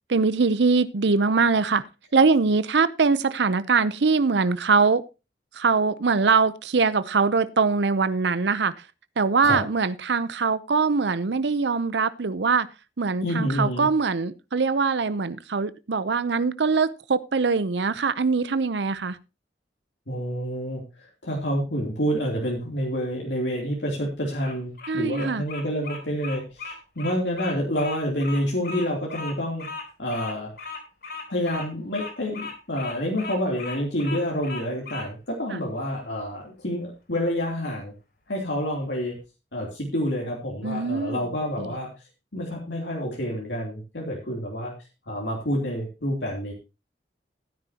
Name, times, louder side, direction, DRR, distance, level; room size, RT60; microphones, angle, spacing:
voice 1, 0.1-1.9 2.1-5.0 5.5-8.7 9.2-12.7 13.0-19.2 24.9-25.4 35.5-35.6 40.6-41.2 41.6-41.7, right 4 dB, 75° right, 0.7 m, -22 dB
voice 2, 13.2-13.9 20.1-29.7 30.0-30.5 31.3-37.9 38.3-39.2 39.5-41.9 42.3-44.7 45.1-46.5, equal, 80° left, 3.1 m, -28 dB
Bird vocalization bird call bird song, 24.2-35.1, left 4 dB, 60° left, 3.8 m, -37 dB
15.5 x 10.0 x 2.9 m
head